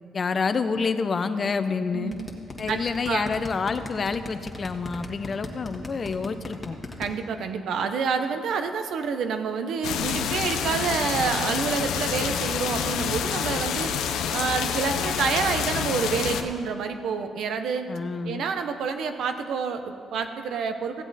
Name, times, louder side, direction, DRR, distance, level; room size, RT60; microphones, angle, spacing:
voice 1, 0.1-2.1 2.6-6.8 17.9-18.4, left 5 dB, 45° left, 10 dB, 0.6 m, -28 dB
voice 2, 1.9-2.3 2.7-2.8 3.1-3.3 7.0-13.9 14.3-18.0 18.2-21.0, right 5 dB, 75° right, 7 dB, 0.8 m, -28 dB
sound 1, 2.1-7.1, left 2 dB, 20° left, 1.6 m, -37 dB
sound 2, 9.8-16.4, left 7 dB, 85° left, 0.6 m, -28 dB
15.5 x 8.0 x 4.1 m, 2.4 s
cardioid pair, 70°, 0 cm